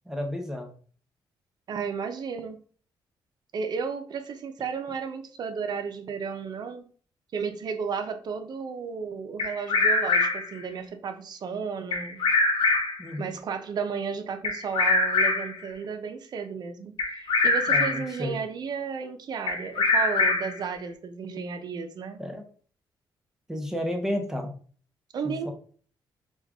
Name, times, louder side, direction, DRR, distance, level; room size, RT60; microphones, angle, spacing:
voice 1, 0.1-0.7 13.0-13.3 17.7-18.4 22.2-22.5 23.5-24.5 25.2-25.5, left 1 dB, 5° right, 3 dB, 0.7 m, -32 dB
voice 2, 1.7-2.6 3.5-6.8 7.3-12.2 13.2-22.2 25.1-25.5, right 6 dB, 55° right, 6 dB, 0.7 m, -33 dB
Bird vocalization bird call bird song, 9.4-10.6 11.9-13.0 14.4-15.6 17.0-18.1 19.5-20.6, left 3 dB, 85° left, 0.8 m, -24 dB
5.0 x 2.4 x 3.5 m, 0.44 s
cardioid pair, 125°, 8 cm